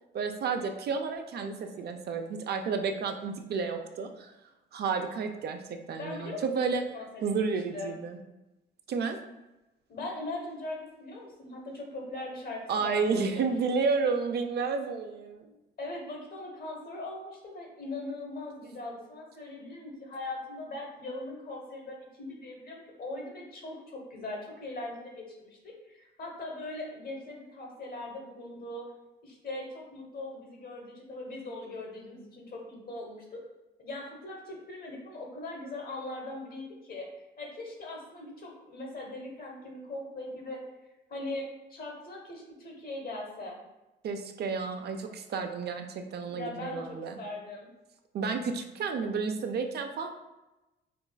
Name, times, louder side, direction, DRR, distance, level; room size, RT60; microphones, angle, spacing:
voice 1, 0.1-4.3 4.7-6.8 7.2-8.2 8.9-9.2 12.7-15.5 44.0-47.2 48.1-50.1, right 5 dB, 55° right, 5 dB, 0.4 m, -31 dB
voice 2, 6.0-7.3 7.7-8.0 9.9-13.5 15.8-28.9 29.2-33.2 33.8-37.1 37.4-40.7 41.1-43.6 46.3-47.7, left 2 dB, 50° left, 0 dB, 1.0 m, -40 dB
4.6 x 2.2 x 2.2 m, 1.0 s
cardioid pair, 90°, 20 cm